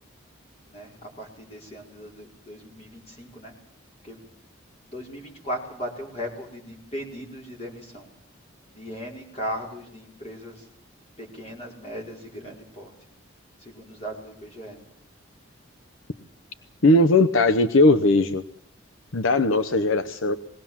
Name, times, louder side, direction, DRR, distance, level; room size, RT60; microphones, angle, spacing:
voice 1, 0.7-3.5 4.0-4.2 4.8-8.1 8.7-10.7 11.2-12.9 13.6-14.8, equal, 30° left, 0 dB, 4.9 m, -37 dB
voice 2, 16.8-18.4 19.1-20.3, left 2 dB, 75° left, 9 dB, 0.9 m, -19 dB
21.0 x 18.5 x 7.3 m, 0.73 s
head